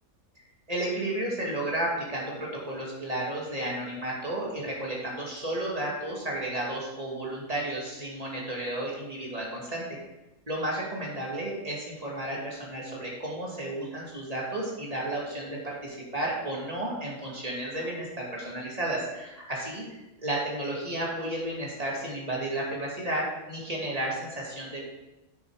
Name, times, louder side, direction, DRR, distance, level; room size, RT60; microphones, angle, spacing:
voice 1, 0.7-10.0 10.5-24.8, right 1 dB, 25° right, -3 dB, 2.4 m, -32 dB
9.4 x 7.0 x 4.9 m, 1.0 s
omnidirectional pair, 1.5 m